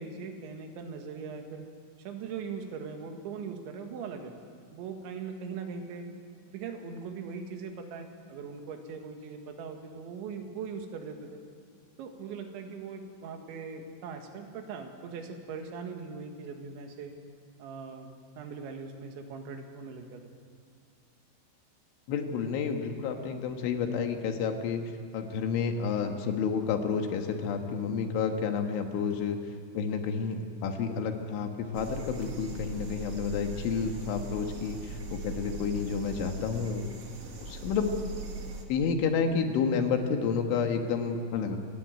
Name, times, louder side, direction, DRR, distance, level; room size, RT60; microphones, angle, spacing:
voice 1, 0.0-1.7 2.1-4.3 4.7-6.1 6.5-11.4 12.0-17.1 17.6-18.1 18.4-20.3, right 5 dB, 75° right, 4 dB, 4.2 m, -40 dB
voice 2, 22.1-24.8 25.1-29.4 29.7-36.9 37.4-38.0 38.7-41.6, left 6 dB, 85° left, 4 dB, 4.2 m, -30 dB
sound 1, 31.7-38.6, right 3 dB, 40° right, 2.5 m, -41 dB
28.0 x 16.5 x 9.2 m, 2.2 s
omnidirectional pair, 5.4 m